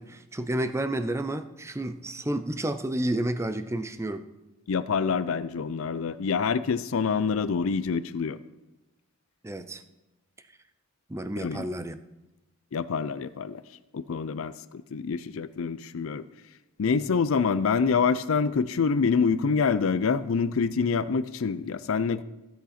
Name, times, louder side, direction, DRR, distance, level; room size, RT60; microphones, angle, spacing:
voice 1, 0.0-4.2 9.4-9.8 11.1-12.0, right 1 dB, 15° right, 11 dB, 0.5 m, -30 dB
voice 2, 4.7-8.4 11.4-11.6 12.7-13.6 13.9-16.2 16.8-22.2, left 5 dB, 65° left, 14 dB, 0.5 m, -26 dB
15.5 x 8.0 x 4.3 m, 1.0 s
head